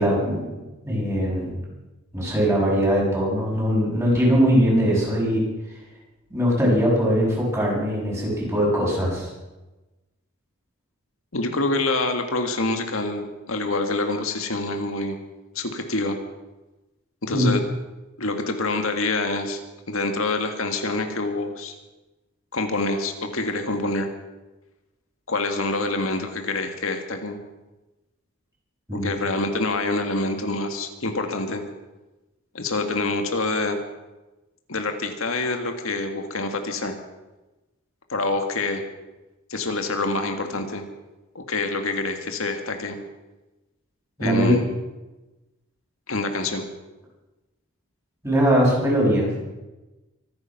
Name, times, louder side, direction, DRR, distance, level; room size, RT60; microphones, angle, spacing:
voice 1, 0.0-1.6 2.1-5.4 6.3-9.3 17.3-17.6 28.9-29.1 44.2-44.5 48.2-49.3, equal, 15° right, -4 dB, 6.7 m, -21 dB
voice 2, 11.3-15.2 15.6-16.2 17.2-17.6 18.2-19.6 19.9-21.7 22.5-24.1 25.3-27.4 28.9-31.6 32.5-33.8 34.7-37.0 38.1-38.8 39.5-40.8 41.4-43.0 44.2-44.7 46.1-46.7, left 2 dB, 80° left, 5 dB, 1.8 m, -26 dB
24.5 x 9.8 x 5.9 m, 1.1 s
head